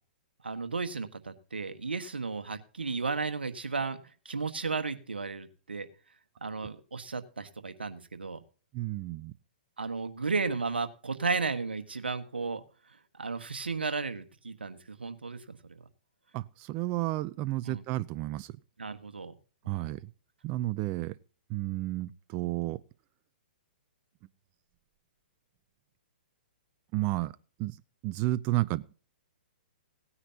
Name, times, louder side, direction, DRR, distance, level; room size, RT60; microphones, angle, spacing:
voice 1, 0.4-4.0 4.2-5.9 6.4-8.4 9.8-12.6 13.1-15.8 17.6-17.8 18.8-19.3 19.7-19.9, right 4 dB, 90° right, 1.5 m, -34 dB
voice 2, 8.7-9.3 16.3-18.5 19.7-20.0 20.4-21.2 21.5-22.8 26.9-27.3 27.6-27.8 28.0-28.8, right 17 dB, 35° right, 0.5 m, -31 dB
18.0 x 9.8 x 2.8 m
hypercardioid pair, 125°, 5 cm